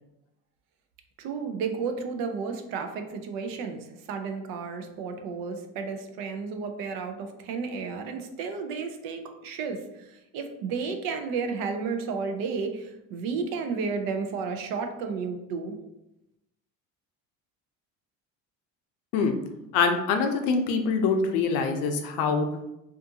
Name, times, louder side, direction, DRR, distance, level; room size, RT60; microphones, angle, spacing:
voice 1, 1.2-15.8, right 5 dB, 75° right, 6 dB, 0.5 m, -32 dB
voice 2, 19.7-22.5, left 5 dB, 85° left, 6 dB, 0.5 m, -24 dB
2.5 x 2.4 x 2.6 m, 0.90 s
cardioid pair, 140°, 34 cm